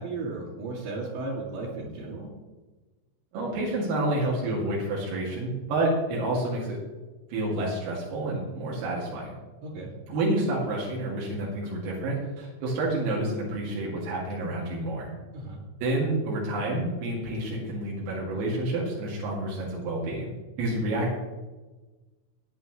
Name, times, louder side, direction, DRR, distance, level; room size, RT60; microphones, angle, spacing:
voice 1, 0.0-2.3 9.6-9.9 15.3-15.6, right 3 dB, 65° right, -7 dB, 4.2 m, -35 dB
voice 2, 3.3-6.8 7.3-9.4 10.1-15.1 15.8-21.2, right 1 dB, 85° right, -4 dB, 5.1 m, -29 dB
18.5 x 9.8 x 3.2 m, 1.2 s
omnidirectional pair, 5.9 m